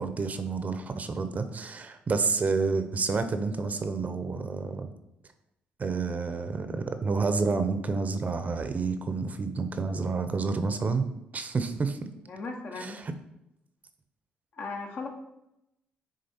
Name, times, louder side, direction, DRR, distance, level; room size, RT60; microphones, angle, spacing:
voice 1, 0.0-4.9 5.8-11.0 11.3-12.0 12.8-13.1, right 4 dB, 40° right, 9 dB, 0.7 m, -29 dB
voice 2, 12.3-13.0 14.5-15.1, left 3 dB, 55° left, 2 dB, 1.2 m, -37 dB
6.6 x 3.7 x 4.4 m, 0.85 s
supercardioid pair, 65°, 4 cm